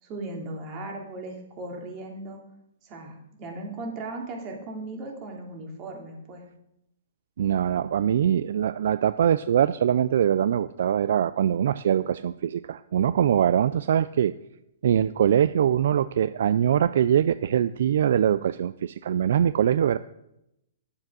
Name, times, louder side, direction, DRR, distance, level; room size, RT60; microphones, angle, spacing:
voice 1, 0.0-2.4 2.8-6.4, right 2 dB, 30° right, 1 dB, 2.8 m, -37 dB
voice 2, 7.4-14.3 14.8-20.0, right 9 dB, 65° right, 14 dB, 0.4 m, -23 dB
11.5 x 7.3 x 6.2 m, 0.83 s
hypercardioid pair, 145°, 0 cm